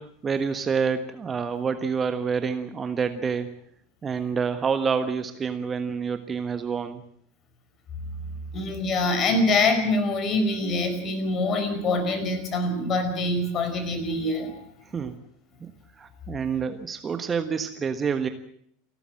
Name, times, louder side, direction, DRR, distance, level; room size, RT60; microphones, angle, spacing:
voice 1, 0.0-3.5 4.0-7.0 14.9-15.2 15.6-15.7 16.0-18.3, right 6 dB, 20° right, 9 dB, 1.4 m, -27 dB
voice 2, 8.5-14.6, left 2 dB, 35° left, 9 dB, 4.9 m, -25 dB
28.5 x 13.0 x 7.7 m, 0.67 s
figure-of-eight pair, 80°, 0 cm